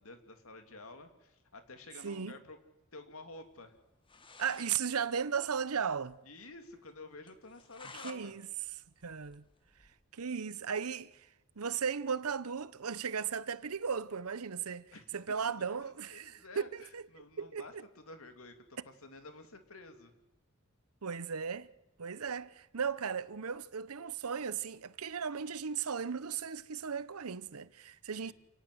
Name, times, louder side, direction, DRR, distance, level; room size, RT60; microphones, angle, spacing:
voice 1, 0.0-2.6 2.9-3.8 6.2-8.3 14.9-15.1 15.8-20.1 28.2-28.3, left 2 dB, 70° left, 2.9 m, -51 dB
voice 2, 2.0-2.4 4.4-6.2 8.0-8.4 9.0-9.4 10.1-11.3 11.6-14.9 15.1-17.8 21.0-21.7 22.0-28.3, right 6 dB, 85° right, 0.8 m, -36 dB
sound 1, 3.8-3.9 4.1-4.9 5.2-5.3 5.5-5.6 6.1-6.2 6.5-6.6 7.3-8.2 8.6-10.0, left 4 dB, 25° left, 1.5 m, -52 dB
28.0 x 18.5 x 7.9 m
head